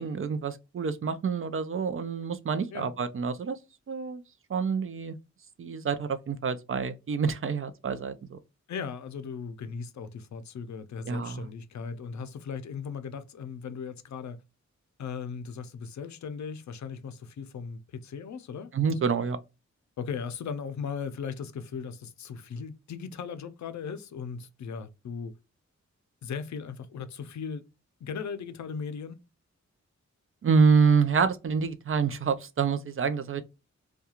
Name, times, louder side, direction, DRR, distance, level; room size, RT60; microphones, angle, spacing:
voice 1, 0.0-3.6 3.9-4.2 4.5-5.2 5.6-8.4 11.1-11.5 18.7-19.4 30.4-33.4, right 5 dB, 45° right, 0.4 m, -27 dB
voice 2, 8.7-14.4 15.0-19.1 20.0-25.3 26.2-27.7 28.0-29.2, left 6 dB, 70° left, 0.5 m, -38 dB
2.3 x 2.2 x 2.8 m
wide cardioid pair, 85°, 29 cm